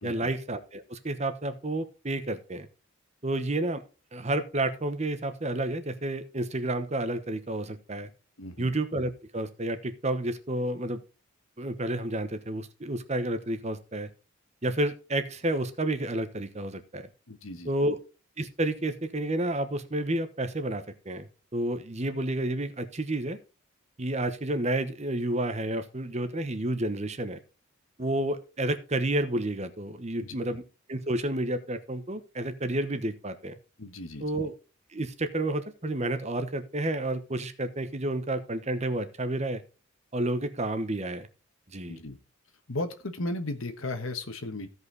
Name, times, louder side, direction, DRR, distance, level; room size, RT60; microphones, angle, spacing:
voice 1, 0.0-2.7 3.2-3.8 4.1-8.1 8.6-11.0 11.6-14.1 14.6-17.1 17.6-18.0 18.4-23.4 24.0-27.4 28.0-30.6 30.9-33.5 34.2-34.5 34.9-39.6 40.1-41.3 41.7-42.0, right 1 dB, 30° right, 10 dB, 1.1 m, -30 dB
voice 2, 8.4-8.7 17.3-17.7 30.2-30.4 33.8-34.5 41.9-42.2 42.7-44.7, left 2 dB, 70° left, 7 dB, 1.4 m, -36 dB
15.5 x 5.5 x 4.0 m, 0.34 s
head